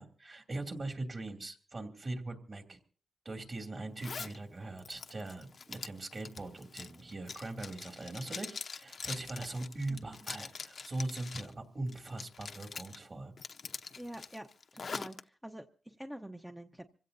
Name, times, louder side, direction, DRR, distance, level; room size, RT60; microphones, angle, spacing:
voice 1, 0.0-2.8 3.2-13.3, right 2 dB, 35° right, 5 dB, 2.7 m, -41 dB
Zipper (clothing), 4.0-4.4 4.8-11.5 11.9-13.0 13.4-15.2, left 5 dB, 55° left, 0.8 m, -44 dB
voice 2, 9.9-10.2 14.0-14.5 14.7-16.9, right 1 dB, 10° right, 4 dB, 0.9 m, -46 dB
26.0 x 16.5 x 2.7 m, 0.42 s
cardioid pair, 100°, 0 cm